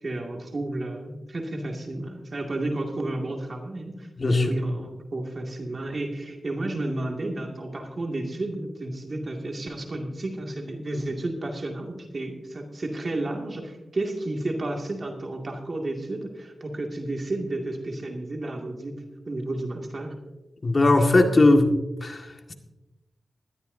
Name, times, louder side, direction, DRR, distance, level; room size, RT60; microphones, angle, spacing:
voice 1, 0.0-19.0 19.3-20.1, right 2 dB, 50° right, 1 dB, 2.3 m, -32 dB
voice 2, 4.2-4.5 20.6-21.7 22.0-22.5, left 2 dB, 45° left, 3 dB, 1.9 m, -19 dB
20.0 x 12.5 x 2.7 m, 1.1 s
cardioid pair, 65°, 0 cm